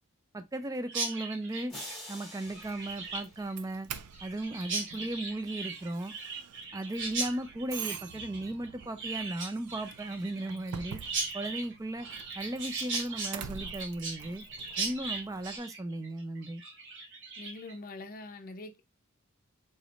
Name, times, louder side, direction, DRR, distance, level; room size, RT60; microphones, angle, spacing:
voice 1, 0.3-1.7 2.1-3.9 4.2-6.1 6.7-11.0 11.3-12.1 12.4-14.5 14.8-16.6, right 1 dB, 15° right, 0.4 m, -36 dB
Chirp tweet, 0.9-17.7, right 3 dB, 55° right, 1.1 m, -38 dB
sound 1, 1.7-4.0, left 1 dB, ahead, 1.5 m, -47 dB
Doorbell, 2.5-15.6, right 8 dB, 90° right, 0.4 m, -47 dB
voice 2, 17.4-18.8, left 2 dB, 40° left, 0.6 m, -44 dB
4.1 x 3.4 x 2.4 m
head